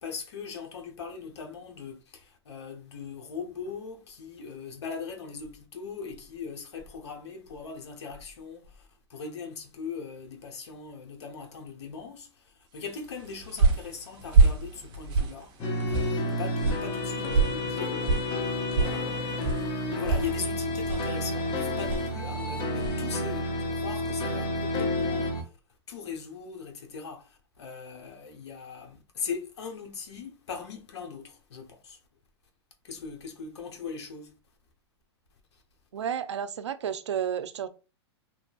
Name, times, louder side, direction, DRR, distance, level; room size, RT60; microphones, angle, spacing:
voice 1, 0.0-15.5 15.9-25.5 25.9-32.0 32.8-34.3, left 5 dB, 80° left, 0.8 m, -40 dB
sound 1, 13.0-23.1, right 3 dB, 35° right, 0.8 m, -28 dB
sound 2, 15.6-25.4, left 1 dB, 35° left, 0.7 m, -30 dB
voice 2, 35.9-37.7, right 8 dB, 80° right, 0.4 m, -31 dB
3.0 x 2.3 x 2.3 m
hypercardioid pair, 120°, 14 cm